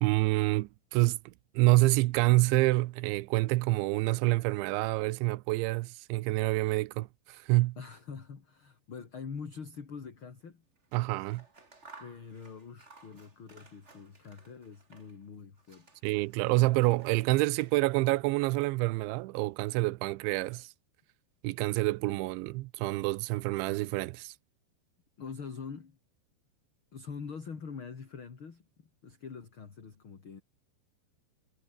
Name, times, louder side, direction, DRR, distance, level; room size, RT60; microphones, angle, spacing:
voice 1, 0.0-7.8 10.9-11.4 16.0-20.7 21.4-24.3, right 20 dB, 90° right, 3.1 m, -27 dB
voice 2, 7.8-10.6 12.0-16.1 25.2-26.0 26.9-30.4, left 5 dB, 35° left, 3.0 m, -44 dB
Scissors, 10.8-15.3 15.6-18.1, right 3 dB, 20° right, 2.6 m, -58 dB
omnidirectional pair, 5.2 m